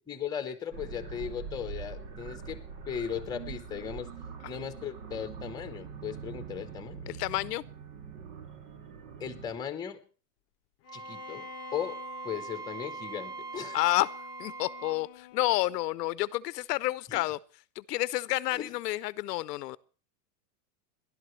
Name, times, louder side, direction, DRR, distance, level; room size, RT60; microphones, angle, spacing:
voice 1, 0.1-4.1 4.5-7.1 9.2-10.0 10.9-12.0 12.2-13.8 17.1-17.2 18.5-18.7, left 8 dB, 10° left, 0.9 m, -37 dB
sound 1, 0.7-9.5, right 6 dB, 70° right, 2.7 m, -43 dB
voice 2, 7.1-7.6 13.7-14.1 14.4-17.4 17.8-19.8, left 17 dB, 70° left, 0.6 m, -29 dB
Bowed string instrument, 10.8-15.9, left 14 dB, 30° left, 0.6 m, -50 dB
Wind instrument woodwind instrument, 10.9-15.0, right 5 dB, 25° right, 0.8 m, -42 dB
28.0 x 11.5 x 3.2 m
supercardioid pair, 155°, 49 cm